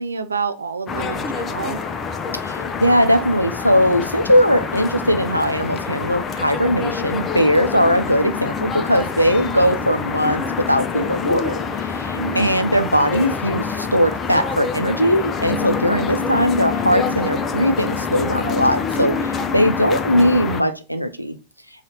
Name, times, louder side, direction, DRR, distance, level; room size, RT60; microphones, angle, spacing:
voice 1, 0.0-1.8 12.2-12.6, right 5 dB, 75° right, 0.4 m, -28 dB
sound 1, 0.9-20.6, left 5 dB, 25° left, 0.4 m, -26 dB
voice 2, 2.4-11.5 11.8-21.4, equal, 90° left, 0.4 m, -19 dB
4.1 x 2.4 x 2.8 m
figure-of-eight pair, 90°, 0 cm